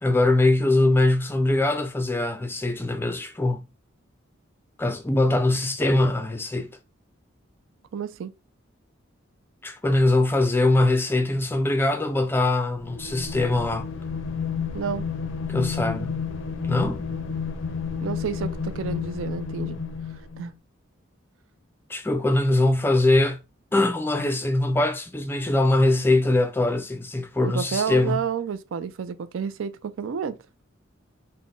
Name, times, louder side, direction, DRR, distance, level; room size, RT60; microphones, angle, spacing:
voice 1, 0.0-3.6 4.8-6.7 9.6-13.9 15.5-16.1 16.6-17.1 21.9-23.4 23.7-28.2, left 2 dB, 10° left, 0.4 m, -22 dB
voice 2, 7.9-8.3 14.7-15.1 18.0-19.8 20.4-20.5 27.4-30.4, right 7 dB, 80° right, 0.4 m, -30 dB
sound 1, 12.8-20.5, left 6 dB, 75° left, 0.5 m, -31 dB
3.8 x 2.1 x 3.7 m
head